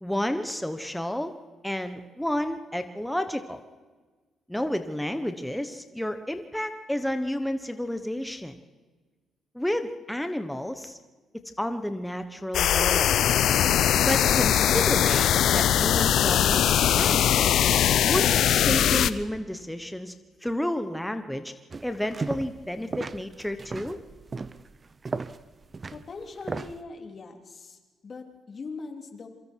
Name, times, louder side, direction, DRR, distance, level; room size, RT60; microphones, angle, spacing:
voice 1, 0.0-1.3 1.6-3.6 4.5-8.6 9.5-11.0 11.6-13.1 14.0-16.6 17.0-17.4 18.0-20.1 20.4-21.5 21.8-24.0, left 1 dB, 5° left, 8 dB, 1.2 m, -31 dB
sound 1, 12.5-19.1, left 10 dB, 75° left, 0.7 m, -21 dB
sound 2, 21.7-22.7 22.9-26.8, right 4 dB, 30° right, 0.8 m, -35 dB
voice 2, 25.9-29.3, left 4 dB, 40° left, 3 dB, 3.6 m, -41 dB
27.5 x 23.5 x 4.7 m, 1.3 s
cardioid pair, 90°, 0 cm